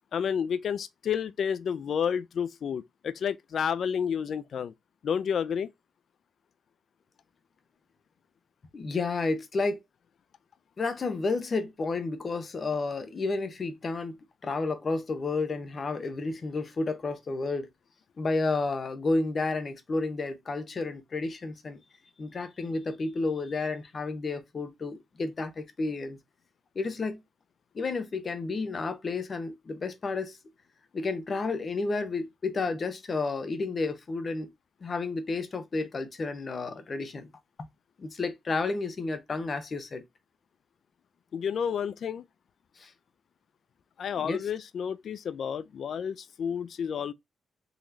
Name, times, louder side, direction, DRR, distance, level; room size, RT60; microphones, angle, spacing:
voice 1, 0.1-4.7 5.0-5.7 41.3-42.2 44.0-47.1, left 7 dB, 60° left, 0.3 m, -30 dB
voice 2, 8.7-9.8 10.8-14.2 14.4-17.7 18.2-21.8 22.2-26.2 26.7-27.2 27.7-30.4 30.9-34.5 34.8-37.3 38.0-40.0 42.8-42.9 44.2-44.5, left 3 dB, 40° left, 0.9 m, -31 dB
4.0 x 3.0 x 2.6 m
cardioid pair, 105°, 0 cm